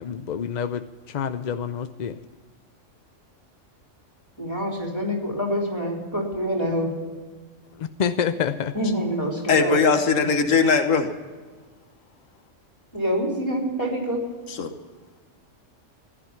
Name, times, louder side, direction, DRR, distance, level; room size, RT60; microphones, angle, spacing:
voice 1, 0.0-2.2 7.8-8.7, left 7 dB, 50° left, 10 dB, 0.5 m, -28 dB
voice 2, 4.4-6.9 8.7-9.8 10.2-10.3 12.9-14.2, equal, 20° left, 0 dB, 3.5 m, -26 dB
voice 3, 9.5-11.1 14.5-14.7, left 5 dB, 90° left, 7 dB, 1.5 m, -20 dB
15.5 x 11.5 x 5.8 m, 1.4 s
omnidirectional pair, 1.3 m